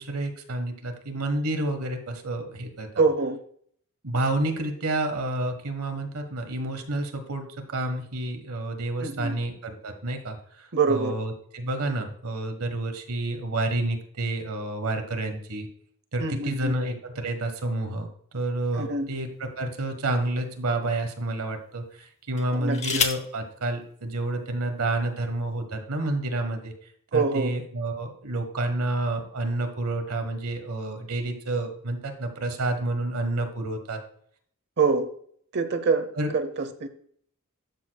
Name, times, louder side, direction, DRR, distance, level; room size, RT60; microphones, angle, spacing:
voice 1, 0.0-3.0 4.0-15.7 16.1-18.1 18.3-26.7 27.1-34.0 36.2-36.3, right 2 dB, 85° right, 6 dB, 1.4 m, -29 dB
voice 2, 3.0-3.4 9.0-9.4 10.7-11.1 16.2-16.7 18.8-19.1 22.5-23.0 27.1-27.5 34.8-35.1 35.5-36.1 36.3-36.9, right 4 dB, 50° right, 10 dB, 0.9 m, -25 dB
sound 1, 18.6-19.8 20.5-20.7 22.3-23.4 24.5-24.6 24.9-25.3, left 5 dB, 30° left, 0.9 m, -31 dB
12.0 x 6.7 x 2.3 m, 0.62 s
head